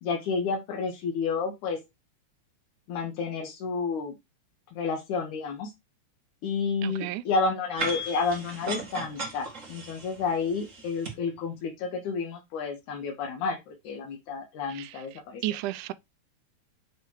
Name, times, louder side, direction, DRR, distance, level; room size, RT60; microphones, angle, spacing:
voice 1, 0.0-1.8 2.9-4.1 4.8-5.7 6.4-15.4, left 4 dB, 75° left, 2.6 m, -30 dB
voice 2, 6.8-7.2 14.7-14.9 15.4-15.9, right 15 dB, 85° right, 2.0 m, -32 dB
sound 1, 7.8-11.1, right 2 dB, 30° right, 1.8 m, -36 dB
8.1 x 3.3 x 4.6 m
omnidirectional pair, 3.5 m